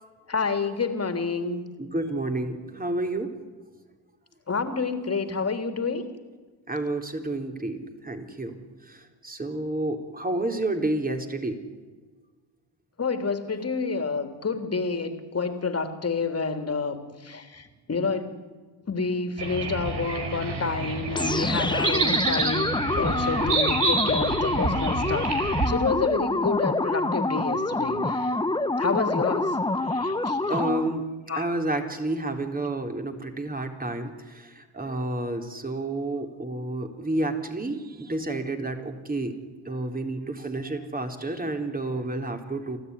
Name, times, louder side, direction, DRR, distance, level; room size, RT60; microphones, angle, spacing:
voice 1, 0.3-1.6 4.5-6.1 13.0-18.4 18.9-22.6 23.0-28.4 28.8-30.6 31.3-31.5, left 4 dB, 35° left, 7 dB, 3.3 m, -29 dB
voice 2, 1.8-3.3 6.7-8.6 8.9-11.6 30.5-39.4 39.6-42.8, right 2 dB, 20° right, 4 dB, 4.0 m, -30 dB
sound 1, 19.4-25.7, right 3 dB, 65° right, 5.3 m, -28 dB
sound 2, 21.1-31.0, left 2 dB, 10° left, 1.0 m, -26 dB
30.0 x 13.5 x 9.8 m, 1.4 s
supercardioid pair, 65°, 45 cm